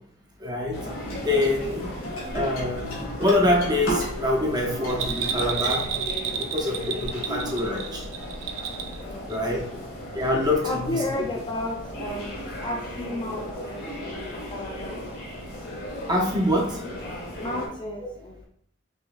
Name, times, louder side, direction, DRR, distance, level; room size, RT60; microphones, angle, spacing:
voice 1, 0.4-0.8 1.2-1.9 2.3-5.8 6.4-8.1 9.3-9.6 10.1-10.9 16.1-16.8, left 1 dB, 20° right, -2 dB, 0.9 m, -25 dB
sound 1, 0.7-17.7, left 1 dB, 55° left, 1.4 m, -36 dB
sound 2, 1.1-4.4 4.7-5.7, right 1 dB, 80° left, 1.6 m, -34 dB
Bell, 4.9-9.0 9.3-9.4, right 8 dB, 85° right, 0.5 m, -30 dB
voice 2, 7.1-7.5 8.9-9.7 10.6-15.0 17.4-18.5, left 1 dB, 25° left, 1 dB, 0.4 m, -34 dB
5.4 x 3.2 x 2.3 m, 0.67 s
head